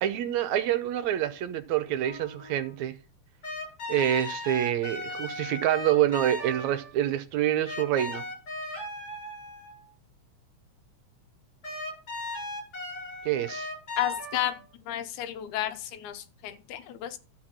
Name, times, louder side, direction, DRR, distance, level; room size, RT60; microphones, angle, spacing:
voice 1, 0.0-3.0 3.9-8.2 13.3-13.7, right 11 dB, 80° right, 2.0 m, -27 dB
sound 1, 2.0-2.7 3.4-6.9 7.7-9.8 11.6-14.6, left 1 dB, 45° left, 8.6 m, -37 dB
voice 2, 14.0-14.6 14.9-17.2, left 12 dB, 85° left, 2.3 m, -32 dB
12.5 x 4.5 x 7.4 m
omnidirectional pair, 3.3 m